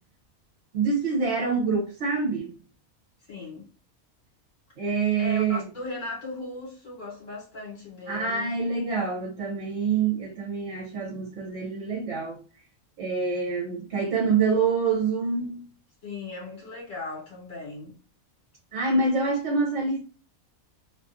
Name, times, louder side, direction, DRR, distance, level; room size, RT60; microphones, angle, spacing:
voice 1, 0.7-2.5 4.8-5.6 8.1-12.4 13.0-15.6 18.7-20.0, right 4 dB, 60° right, 0.9 m, -26 dB
voice 2, 3.3-3.6 5.2-8.6 16.0-17.9, left 2 dB, 65° left, 1.3 m, -37 dB
2.5 x 2.3 x 2.5 m
omnidirectional pair, 1.5 m